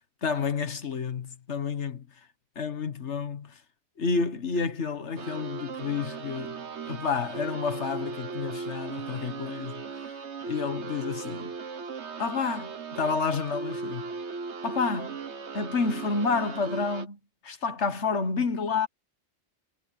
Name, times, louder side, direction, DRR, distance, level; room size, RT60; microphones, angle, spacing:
voice 1, 0.2-2.1 2.6-3.6 4.0-6.6 6.9-9.8 10.5-11.6 12.2-14.1 14.6-15.2 15.5-18.9, left 5 dB, 85° left, 1.8 m, -30 dB
sound 1, 5.2-17.1, right 5 dB, 80° right, 1.6 m, -37 dB
omnidirectional pair, 1.1 m